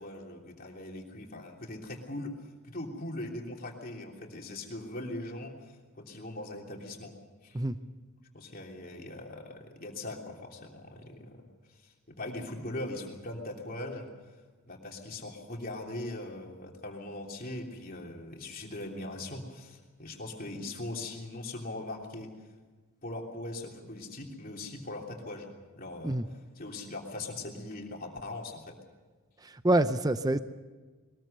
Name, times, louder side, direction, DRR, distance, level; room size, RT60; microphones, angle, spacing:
voice 1, 0.0-2.3 2.6-7.1 7.4-7.6 8.3-11.4 11.7-14.1 14.7-22.3 23.0-25.5 25.7-28.7, left 2 dB, 40° left, 0 dB, 3.2 m, -40 dB
voice 2, 29.6-30.4, right 1 dB, 15° right, 11 dB, 0.6 m, -25 dB
22.0 x 20.5 x 6.7 m, 1.4 s
head